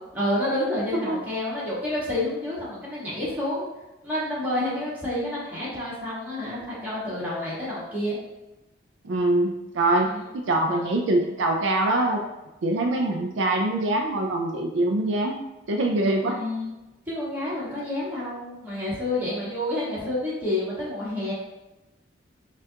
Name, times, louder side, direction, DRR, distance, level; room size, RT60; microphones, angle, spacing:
voice 1, 0.1-3.7 4.0-8.2 10.0-10.3 10.7-10.8 16.2-16.7 17.1-21.3, left 1 dB, 10° right, -9 dB, 1.3 m, -29 dB
voice 2, 9.0-12.2 12.6-15.4 15.7-16.4, right 2 dB, 70° right, 2 dB, 0.4 m, -24 dB
5.4 x 2.4 x 2.8 m, 1.0 s
head